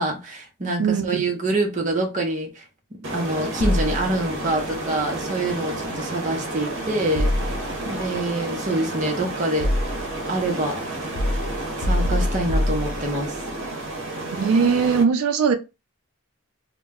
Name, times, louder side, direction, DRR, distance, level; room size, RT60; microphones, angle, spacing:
voice 1, 0.0-2.6 2.9-7.3 7.8-9.7 10.3-10.8 11.8-13.4, right 2 dB, 35° right, 0.6 m, -26 dB
voice 2, 0.8-1.1 14.4-15.6, right 6 dB, 90° right, 0.4 m, -19 dB
sound 1, 3.0-15.0, right 2 dB, 70° right, 0.7 m, -31 dB
sound 2, 3.6-4.5 7.1-8.0 8.9-10.2 11.1-13.4, left 1 dB, 60° left, 0.4 m, -25 dB
2.2 x 2.0 x 3.5 m
head